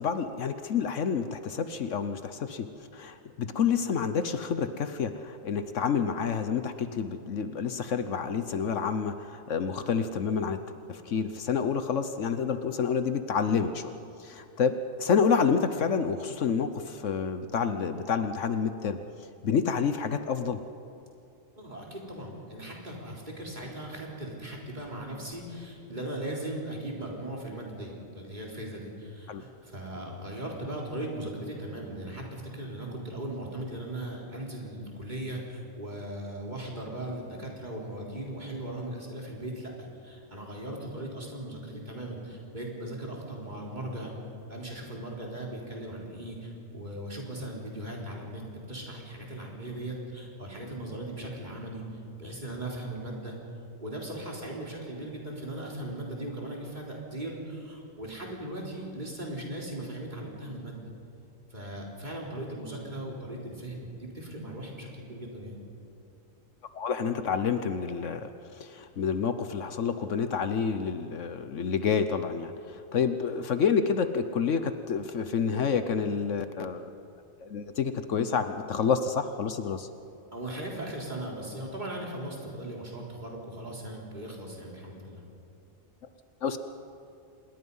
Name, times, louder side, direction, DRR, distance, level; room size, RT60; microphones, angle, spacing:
voice 1, 0.0-2.7 2.9-10.6 10.9-19.0 19.4-20.6 29.3-29.4 66.7-76.9 77.4-79.9 86.4-86.6, left 6 dB, 70° left, 9 dB, 1.2 m, -29 dB
voice 2, 21.6-44.1 44.5-48.4 48.7-53.3 53.8-60.8 61.5-65.6 80.3-85.2, right 1 dB, 35° right, -2 dB, 4.1 m, -38 dB
26.5 x 21.0 x 5.5 m, 2.6 s
omnidirectional pair, 1.4 m